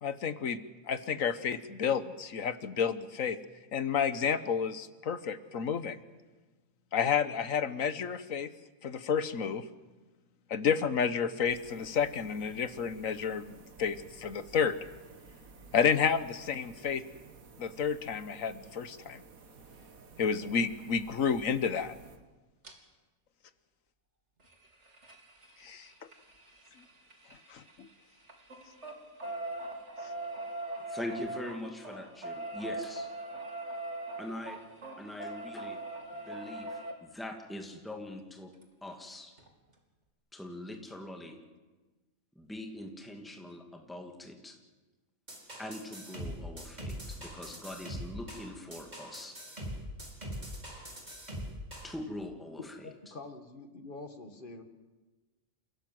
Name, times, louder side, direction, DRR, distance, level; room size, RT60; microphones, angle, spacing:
voice 1, 0.0-3.4 3.7-6.0 6.9-8.5 8.8-9.6 10.5-13.5 13.8-14.8 15.7-17.0 17.6-19.2 20.2-21.9 25.6-25.9 27.5-27.9, left 6 dB, 75° left, 13 dB, 1.5 m, -30 dB
sound 1, 11.4-22.2, right 4 dB, 90° right, 2.1 m, -54 dB
sound 2, 22.6-22.7 24.4-27.9 28.2-36.9 38.6-38.7 39.0-39.1 39.4-39.5, right 2 dB, 55° right, 3.2 m, -41 dB
voice 2, 30.8-33.1 34.2-34.6 35.0-35.8 36.1-38.5 38.8-39.3 40.3-41.4 42.4-44.6 45.6-49.4 51.8-52.8, left 1 dB, ahead, 3 dB, 2.4 m, -42 dB
sound 3, 45.3-51.9, equal, 30° right, 5.1 m, -42 dB
voice 3, 52.6-54.6, left 3 dB, 40° left, 7 dB, 2.0 m, -45 dB
29.0 x 17.0 x 7.8 m, 1.2 s
omnidirectional pair, 1.4 m